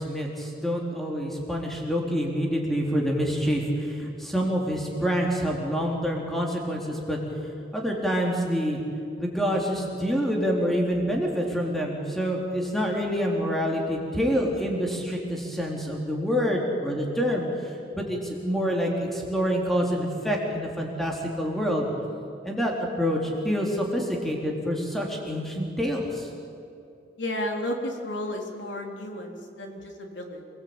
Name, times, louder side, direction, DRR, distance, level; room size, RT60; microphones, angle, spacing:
voice 1, 0.0-7.2 7.7-8.8 9.2-21.9 22.4-26.3, equal, ahead, -1 dB, 3.6 m, -27 dB
voice 2, 27.2-30.5, left 1 dB, 85° left, 2 dB, 3.7 m, -33 dB
27.5 x 20.0 x 8.9 m, 2.7 s
head